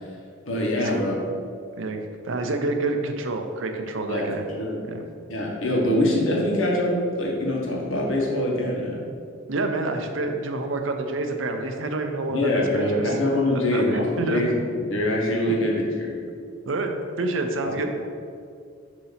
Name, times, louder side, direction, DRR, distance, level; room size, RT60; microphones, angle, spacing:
voice 1, 0.5-1.2 4.1-4.3 4.6-4.8 5.3-9.0 12.3-16.2 17.6-17.9, left 1 dB, 75° left, -2 dB, 1.2 m, -24 dB
voice 2, 1.8-4.4 4.9-5.0 9.5-13.2 13.5-14.4 16.7-17.9, right 2 dB, 70° right, 5 dB, 0.7 m, -28 dB
7.1 x 2.9 x 5.7 m, 2.3 s
head